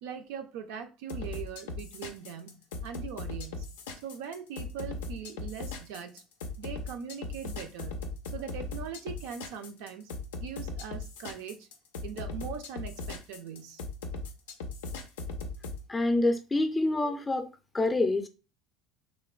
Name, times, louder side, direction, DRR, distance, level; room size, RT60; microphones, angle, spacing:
voice 1, 0.0-3.7 4.0-6.2 6.6-8.0 8.3-10.1 10.4-11.7 12.0-13.8, right 7 dB, 75° right, 0.4 m, -41 dB
sound 1, 1.1-15.8, left 3 dB, 90° left, 0.4 m, -38 dB
voice 2, 15.9-17.5 17.7-18.3, left 2 dB, 20° left, 0.4 m, -26 dB
3.1 x 2.1 x 2.3 m
supercardioid pair, 90°, 0 cm